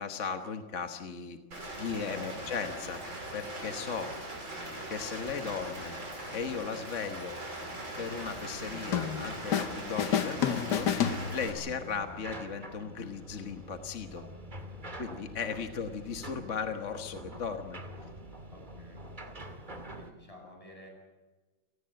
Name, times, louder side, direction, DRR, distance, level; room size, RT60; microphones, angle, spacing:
voice 1, 0.0-1.4 1.8-3.0 3.3-4.1 4.9-6.0 6.3-7.4 8.0-10.9 11.3-14.2 15.0-17.8, left 6 dB, 40° left, 6 dB, 1.4 m, -36 dB
Rain, 1.5-11.5, right 1 dB, 70° right, 6.6 m, -40 dB
sound 1, 8.2-20.1, right 1 dB, 25° right, 2.0 m, -46 dB
sound 2, 8.9-9.7 10.0-11.8, left 8 dB, 60° left, 1.5 m, -30 dB
voice 2, 18.5-19.4 20.0-20.9, left 1 dB, 15° left, 1 dB, 7.7 m, -53 dB
29.0 x 19.0 x 7.7 m, 1.3 s
omnidirectional pair, 2.2 m